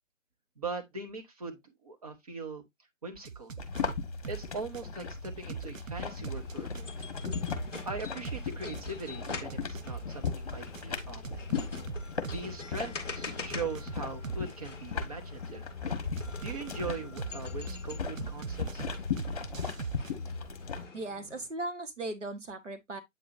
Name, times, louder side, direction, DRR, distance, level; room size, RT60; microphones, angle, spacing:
voice 1, 0.6-2.6 3.0-3.5 4.3-7.1 7.8-11.4 12.3-15.7 16.4-18.8, right 3 dB, 30° right, 1.3 m, -40 dB
sound 1, 3.2-4.4 4.7-8.4 8.7-12.4 12.7-14.5 16.2-17.7 18.2-20.1, right 6 dB, 85° right, 0.6 m, -40 dB
sound 2, 3.6-20.9, left 5 dB, 30° left, 1.5 m, -37 dB
sound 3, 6.2-21.5, left 4 dB, 5° left, 1.4 m, -46 dB
voice 2, 20.9-23.0, right 2 dB, 65° right, 1.5 m, -37 dB
8.4 x 4.9 x 2.7 m
figure-of-eight pair, 150°, 38 cm